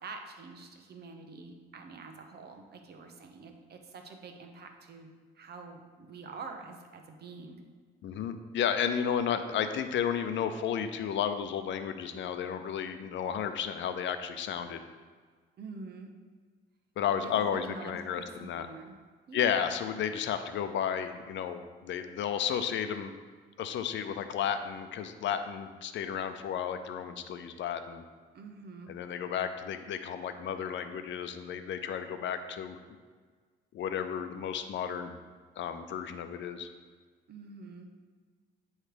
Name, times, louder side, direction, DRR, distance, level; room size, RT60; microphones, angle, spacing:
voice 1, 0.0-5.1 5.3-7.6 15.6-16.1 17.2-18.9 19.3-19.8 28.3-28.9 37.3-37.9, right 4 dB, 55° right, 4 dB, 0.9 m, -46 dB
voice 2, 8.0-14.8 17.0-18.7 19.3-23.1 23.6-28.0 28.9-32.8 33.7-35.1 35.6-36.7, left 8 dB, 70° left, 9 dB, 0.6 m, -33 dB
9.1 x 3.2 x 5.0 m, 1.5 s
cardioid pair, 90°, 20 cm